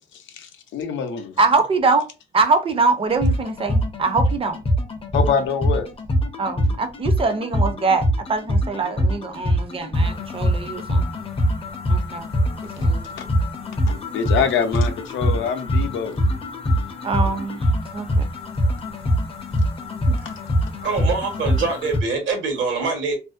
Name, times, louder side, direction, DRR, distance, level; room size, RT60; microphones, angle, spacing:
voice 1, 0.1-1.3 5.1-5.9 13.2-13.3 13.9-16.2, left 6 dB, 75° left, 0.5 m, -25 dB
voice 2, 1.4-2.1 2.3-4.6 6.4-11.1 11.9-12.3 12.6-13.1 17.0-17.6 17.9-18.3 20.1-20.2, right 3 dB, 30° right, 0.5 m, -23 dB
sound 1, 3.1-22.0, equal, 30° left, 0.6 m, -23 dB
voice 3, 20.8-23.1, right 4 dB, 75° right, 1.1 m, -24 dB
2.4 x 2.1 x 2.4 m
cardioid pair, 90°, 20 cm